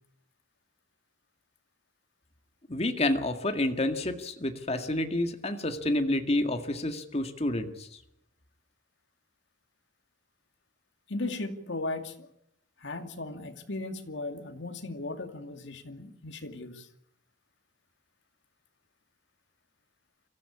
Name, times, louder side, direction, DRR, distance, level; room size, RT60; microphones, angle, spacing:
voice 1, 2.7-7.9, left 1 dB, 35° left, 2.0 m, -29 dB
voice 2, 11.1-12.3 12.8-16.9, left 2 dB, 70° left, 2.4 m, -37 dB
25.0 x 15.0 x 8.6 m
head